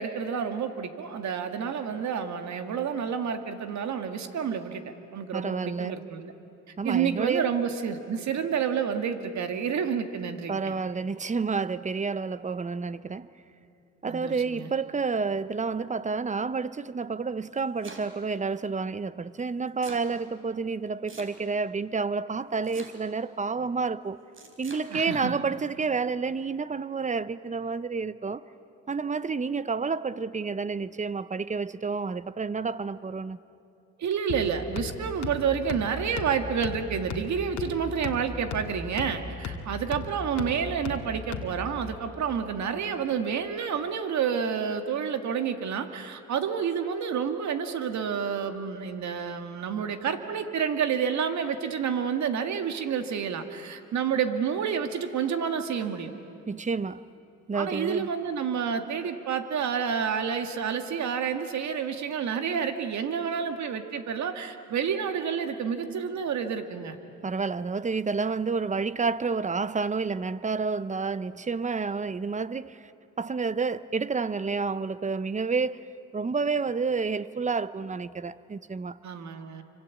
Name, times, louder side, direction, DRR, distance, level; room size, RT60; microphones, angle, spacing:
voice 1, 0.0-6.3 6.8-10.7 14.1-14.7 24.9-25.4 34.0-56.1 57.5-67.0 79.0-79.6, right 7 dB, 65° right, 2.0 m, -29 dB
voice 2, 5.3-6.0 6.8-7.4 10.5-13.3 14.0-24.2 24.6-28.4 28.9-33.4 56.5-57.0 57.5-58.1 67.2-72.9 73.2-75.8 76.1-79.0, right 4 dB, 25° right, 0.7 m, -29 dB
Domestic sounds home sounds, 17.5-18.3 19.4-20.1 21.1-21.7 22.6-23.3 24.3-24.9, right 3 dB, 40° right, 4.2 m, -46 dB
sound 1, 34.3-41.8, left 4 dB, 65° left, 2.0 m, -37 dB
26.5 x 25.5 x 8.4 m
cardioid pair, 90°, 30 cm